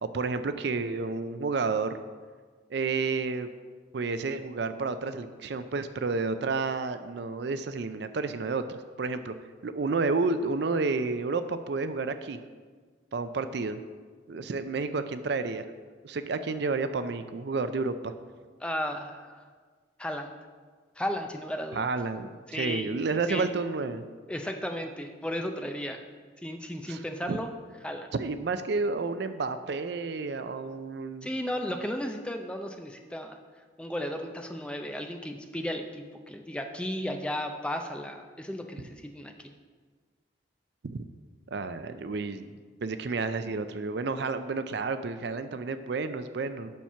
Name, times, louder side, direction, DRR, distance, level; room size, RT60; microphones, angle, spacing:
voice 1, 0.0-2.0 2.7-3.5 3.9-9.3 9.6-12.4 13.1-13.8 14.3-15.6 16.0-18.1 21.7-24.0 26.9-27.0 27.3-27.4 28.1-31.3 40.9-41.0 41.5-42.5 42.8-46.7, right 4 dB, 60° right, 11 dB, 0.4 m, -30 dB
voice 2, 18.6-19.4 20.0-20.3 21.0-21.9 22.5-22.9 23.3-23.5 24.3-26.0 26.4-27.5 27.8-28.1 31.2-33.4 33.8-39.5, equal, 5° left, 5 dB, 0.4 m, -34 dB
7.4 x 5.8 x 5.5 m, 1.5 s
head